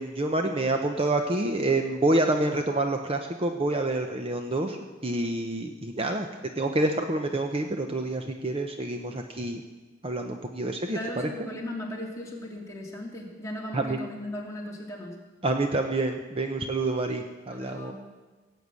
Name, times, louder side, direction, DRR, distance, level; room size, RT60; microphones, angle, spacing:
voice 1, 0.0-6.3 6.6-9.6 10.0-11.3 13.7-14.0 15.4-17.9, right 2 dB, 30° right, 4 dB, 0.8 m, -27 dB
voice 2, 10.9-15.2 17.5-17.9, left 1 dB, 15° left, -3 dB, 2.7 m, -37 dB
17.5 x 7.9 x 8.4 m, 1.3 s
head